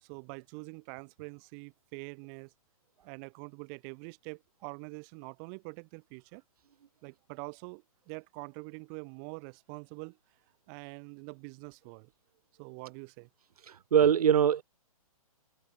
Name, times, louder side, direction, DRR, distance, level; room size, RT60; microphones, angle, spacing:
voice 1, 0.0-2.5 3.0-6.4 7.0-10.2 10.7-12.1 12.6-13.3, right 40 dB or more, 35° right, 1.6 m, -45 dB
voice 2, 13.7-14.6, right 8 dB, 90° right, 0.5 m, -23 dB
hypercardioid pair, 140°, 19 cm